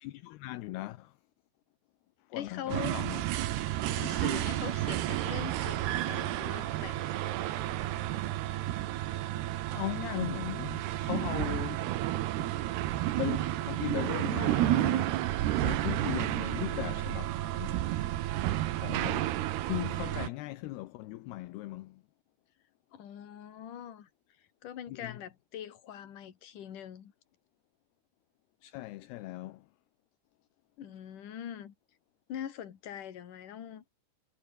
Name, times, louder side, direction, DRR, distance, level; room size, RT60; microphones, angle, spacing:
voice 1, 0.0-1.1 2.3-3.2 9.7-11.9 12.4-12.5 13.2-15.2 15.6-17.9 18.8-19.3 19.6-22.0 24.9-25.2 28.6-29.7, left 18 dB, 75° left, 2.7 m, -38 dB
voice 2, 2.3-3.0 3.9-7.1 22.9-24.1 24.4-27.1 30.8-31.7 32.3-33.8, left 10 dB, 50° left, 3.5 m, -42 dB
sound 1, 2.7-20.3, right 14 dB, 75° right, 3.1 m, -31 dB
omnidirectional pair, 5.1 m